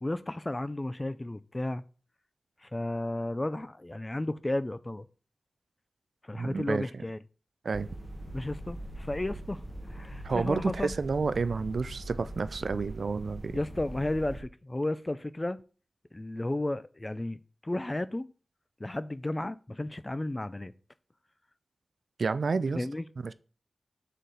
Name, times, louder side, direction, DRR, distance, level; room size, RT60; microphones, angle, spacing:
voice 1, 0.0-1.8 2.6-5.1 6.2-7.2 8.3-10.9 13.5-15.6 16.1-18.3 18.8-20.7 22.7-23.0, left 1 dB, 25° left, 0.4 m, -33 dB
voice 2, 6.3-6.8 7.6-7.9 10.2-13.6 22.2-22.8 23.2-23.3, right 4 dB, 70° right, 0.3 m, -30 dB
sound 1, 7.7-14.4, right 1 dB, 10° right, 0.9 m, -42 dB
6.4 x 4.1 x 3.9 m
cardioid pair, 60°, 0 cm